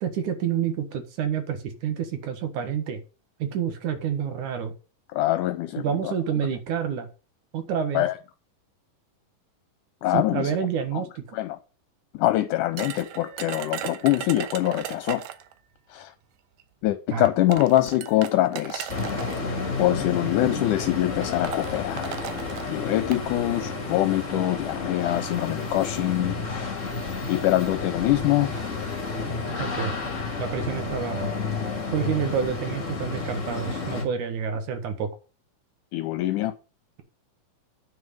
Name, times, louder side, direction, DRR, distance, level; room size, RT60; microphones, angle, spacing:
voice 1, 0.0-3.0 3.4-4.7 5.8-7.1 7.5-8.0 10.1-11.2 17.1-17.3 29.6-30.0 30.4-31.3 31.9-35.1, right 8 dB, 65° right, 2.9 m, -28 dB
voice 2, 5.1-6.1 7.9-8.2 10.0-10.6 10.9-11.0 11.3-11.6 12.1-15.2 15.9-16.1 16.8-18.9 19.8-22.1 22.7-26.9 27.3-28.5 35.9-36.5, left 15 dB, 75° left, 2.1 m, -24 dB
sound 1, 12.8-15.5 16.6-16.7 17.3-19.4 20.3-20.5 20.8-20.9 21.2-23.2, right 11 dB, 80° right, 2.6 m, -36 dB
sound 2, 18.9-34.0, left 4 dB, 25° left, 2.1 m, -31 dB
9.7 x 6.3 x 5.3 m
omnidirectional pair, 3.9 m